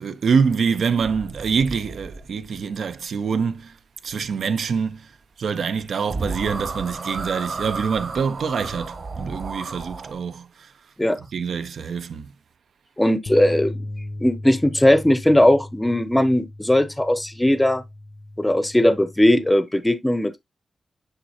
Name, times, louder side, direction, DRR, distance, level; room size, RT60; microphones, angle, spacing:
voice 1, 0.0-3.7 4.0-5.1 5.4-10.7 11.3-12.3, right 6 dB, 70° right, 0.8 m, -25 dB
sound 1, 1.0-2.6 5.8-5.9 6.1-10.1, right 3 dB, 45° right, 1.7 m, -32 dB
voice 2, 13.0-13.8 14.2-17.8 18.4-20.4, left 1 dB, 5° left, 0.7 m, -18 dB
sound 2, 13.3-19.5, left 1 dB, 45° left, 0.7 m, -37 dB
9.2 x 4.2 x 2.8 m
wide cardioid pair, 170°, 0 cm